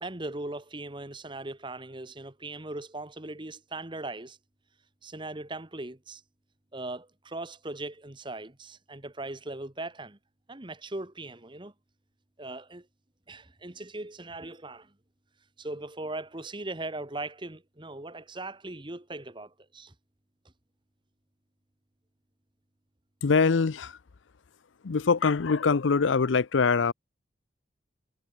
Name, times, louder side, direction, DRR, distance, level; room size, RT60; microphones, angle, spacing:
voice 1, 0.0-4.4 5.0-6.2 6.7-10.2 10.5-11.7 12.4-12.9 13.3-14.9 15.6-19.9, right 2 dB, 25° right, 1.5 m, -39 dB
voice 2, 23.2-24.0 24.8-26.9, left 5 dB, 85° left, 0.6 m, -23 dB
head